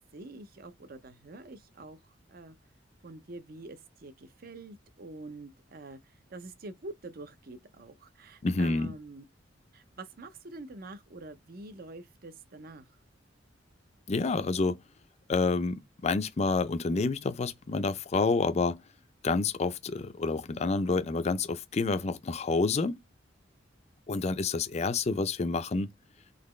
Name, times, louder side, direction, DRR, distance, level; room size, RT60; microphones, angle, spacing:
voice 1, 0.1-2.6 3.0-9.2 9.7-12.9, right 2 dB, 50° right, 0.6 m, -46 dB
voice 2, 8.4-8.9 14.1-14.8 15.3-18.8 19.2-23.0 24.1-25.9, left 3 dB, 35° left, 0.4 m, -28 dB
4.1 x 2.8 x 3.1 m
head